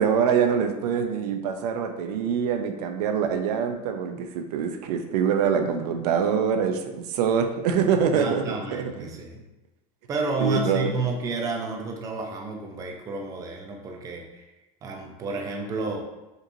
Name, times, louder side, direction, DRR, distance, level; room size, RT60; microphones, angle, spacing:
voice 1, 0.0-8.4 8.7-9.1 10.4-10.9, right 7 dB, 85° right, 6 dB, 0.6 m, -24 dB
voice 2, 8.1-9.4 10.1-14.5 14.8-16.0, right 3 dB, 20° right, 1 dB, 0.4 m, -31 dB
5.2 x 3.0 x 2.6 m, 1.0 s
supercardioid pair, 160°, 19 cm